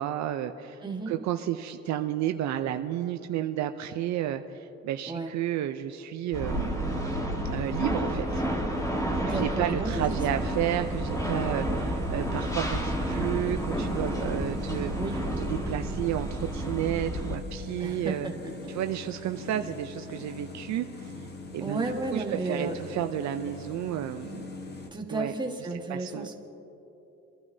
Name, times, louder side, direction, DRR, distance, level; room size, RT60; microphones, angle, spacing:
voice 1, 0.0-6.9 7.5-8.4 9.3-14.9 15.4-18.3 18.7-21.1 21.5-24.5 25.1-25.3 25.9-26.3, right 11 dB, 65° right, 7 dB, 0.6 m, -32 dB
voice 2, 0.8-1.1 5.1-5.3 9.2-10.1 15.0-15.2 17.8-18.3 20.2-20.3 21.6-22.8 24.9-26.3, right 3 dB, 15° right, 1 dB, 1.5 m, -33 dB
sound 1, 6.3-17.4, right 1 dB, 10° left, 1.5 m, -30 dB
sound 2, 9.8-24.9, left 2 dB, 35° left, 1.2 m, -42 dB
26.5 x 12.0 x 2.8 m, 2.9 s
cardioid pair, 105°, 31 cm